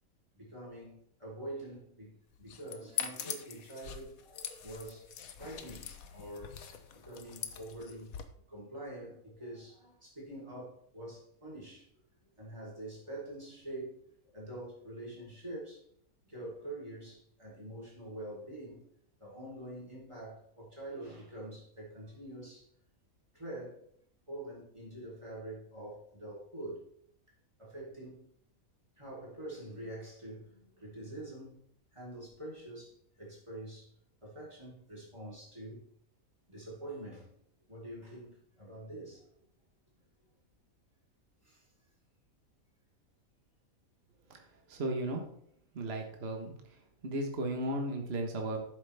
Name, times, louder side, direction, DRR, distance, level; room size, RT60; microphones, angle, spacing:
voice 1, 0.3-5.1 5.4-8.1 8.5-11.9 12.4-14.0 14.3-15.8 16.2-18.8 19.2-22.7 23.3-23.8 24.3-26.9 27.6-28.2 29.0-31.6 31.9-33.9 34.2-35.8 36.5-37.3 37.7-39.3 41.4-41.7 44.7-44.8, right 1 dB, 20° right, -5 dB, 4.0 m, -45 dB
sound 1, 2.3-8.2, left 8 dB, 70° left, 1.3 m, -43 dB
voice 2, 44.7-45.2 45.7-46.5 47.0-48.6, right 1 dB, 45° right, 2 dB, 1.5 m, -35 dB
11.0 x 8.3 x 3.5 m, 0.67 s
omnidirectional pair, 1.5 m